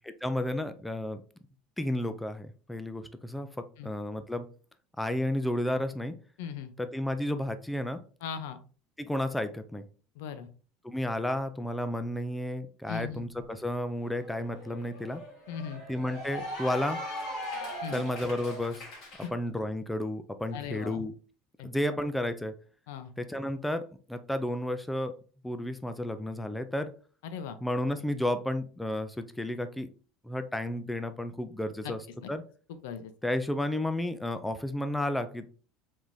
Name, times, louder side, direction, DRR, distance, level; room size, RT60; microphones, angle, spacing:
voice 1, 0.0-1.2 1.8-4.5 5.0-6.1 6.8-8.0 9.0-9.9 10.8-15.2 15.9-17.0 17.9-18.8 19.3-21.1 21.6-22.5 23.2-25.1 25.4-26.9 27.6-29.9 30.2-32.4 33.2-35.5, left 1 dB, 5° left, 9 dB, 0.3 m, -32 dB
voice 2, 6.4-6.7 8.2-8.6 10.2-10.5 12.9-13.2 15.5-15.8 17.8-18.0 20.5-21.0 21.6-21.7 22.9-23.1 27.2-27.6 31.8-31.9 32.2-32.3 32.8-33.1, left 7 dB, 90° left, 11 dB, 0.7 m, -38 dB
Cheering / Applause, 13.4-13.5 13.8-19.3, equal, 40° left, 2.1 m, -40 dB
5.0 x 3.7 x 2.6 m, 0.38 s
cardioid pair, 175°, 0 cm